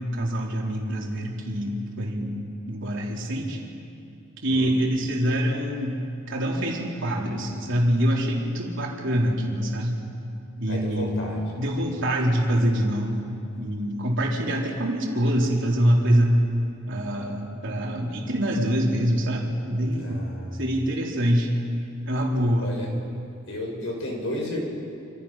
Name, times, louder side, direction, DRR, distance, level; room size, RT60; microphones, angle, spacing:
voice 1, 0.0-3.6 4.4-6.0 6.3-10.0 10.6-11.2 11.6-13.3 13.6-16.4 16.9-20.2 20.6-21.5 22.0-22.7, equal, 65° right, -2 dB, 4.0 m, -25 dB
voice 2, 10.7-11.5 20.0-20.6 22.6-22.9 23.5-24.6, left 1 dB, 70° left, 0 dB, 6.5 m, -33 dB
27.5 x 27.0 x 5.9 m, 2.5 s
head